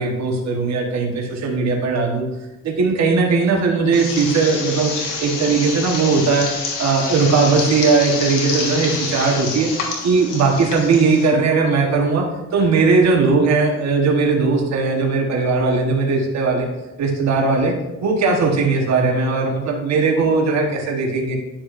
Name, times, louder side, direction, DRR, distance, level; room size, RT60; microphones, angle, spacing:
voice 1, 0.0-2.3 2.6-4.9 5.2-6.5 6.8-9.7 10.0-12.3 12.5-16.7 17.0-17.7 18.0-21.4, right 4 dB, 60° right, 1 dB, 1.2 m, -18 dB
sound 1, 3.9-11.3, left 4 dB, 90° left, 1.5 m, -27 dB
9.9 x 5.9 x 2.5 m, 1.0 s
cardioid pair, 90°, 30 cm